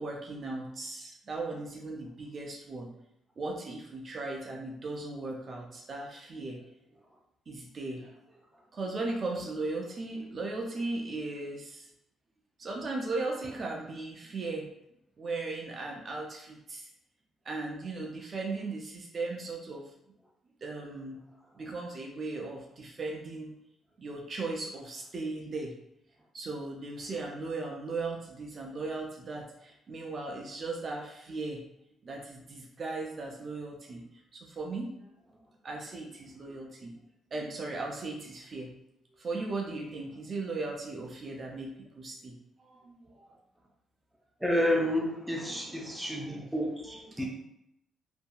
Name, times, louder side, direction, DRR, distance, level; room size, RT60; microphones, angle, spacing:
voice 1, 0.0-2.9 3.4-6.6 7.5-8.1 8.7-11.9 12.6-14.7 15.2-16.9 17.4-19.9 20.6-21.2 21.6-23.5 24.0-25.7 26.3-31.6 32.0-34.0 34.3-35.0 35.6-36.9 37.3-38.7 39.2-43.3 45.4-46.0 46.3-46.4 46.8-47.3, right 3 dB, 45° right, -1 dB, 0.4 m, -37 dB
voice 2, 44.4-47.3, left 1 dB, 5° right, -2 dB, 0.6 m, -30 dB
2.6 x 2.6 x 2.3 m, 0.81 s
cardioid pair, 90°, 0 cm